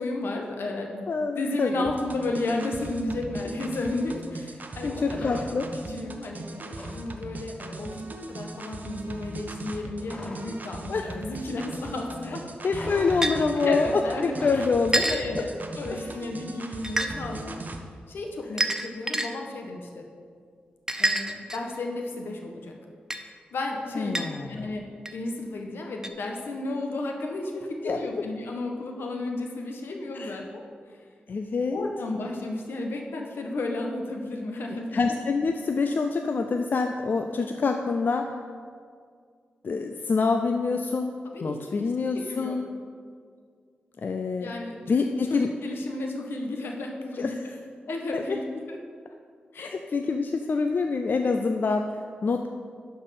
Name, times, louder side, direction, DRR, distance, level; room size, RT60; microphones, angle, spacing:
voice 1, 0.0-1.1 1.3-5.4 5.9-6.5 6.9-8.0 8.3-12.4 12.7-14.6 15.0-15.5 15.8-17.6 18.1-20.0 21.0-22.7 23.5-24.8 25.1-30.6 31.7-35.0 41.3-41.8 42.1-42.6 44.4-47.4 47.9-48.8 49.5-49.7, left 2 dB, 80° left, 2 dB, 1.3 m, -33 dB
voice 2, 1.1-1.9 4.8-5.7 10.9-11.2 12.6-15.0 15.9-16.1 23.9-24.7 27.8-28.2 30.1-30.4 31.3-31.8 34.9-38.3 39.6-41.1 41.4-42.7 44.0-44.5 44.9-45.5 47.2-47.4 48.1-48.2 49.6-52.5, left 4 dB, 60° left, 5 dB, 0.5 m, -26 dB
sound 1, 1.9-17.8, right 2 dB, 50° right, 0.9 m, -39 dB
sound 2, 5.1-5.9 6.2-7.1 7.3-7.6 7.8-10.6 10.9-12.0 12.2-14.8, left 1 dB, 30° left, 1.5 m, -42 dB
sound 3, 13.2-13.3 14.9-15.2 16.8-17.1 18.6-19.3 20.9-21.8 23.1-23.2 24.1-24.3 25.1-25.2 26.0-26.1, right 1 dB, 15° right, 0.8 m, -26 dB
11.5 x 4.6 x 5.9 m, 2.1 s
cardioid pair, 55°, 4 cm